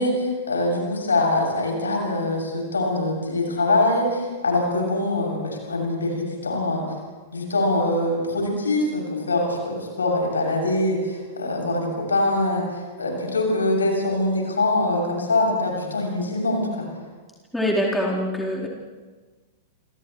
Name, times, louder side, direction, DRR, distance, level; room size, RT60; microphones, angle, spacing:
voice 1, 0.0-6.8 7.3-16.9, left 2 dB, 75° left, 0 dB, 7.2 m, -23 dB
voice 2, 17.5-18.7, equal, 5° left, -4 dB, 4.1 m, -24 dB
30.0 x 28.5 x 3.2 m, 1.4 s
figure-of-eight pair, 100°, 0 cm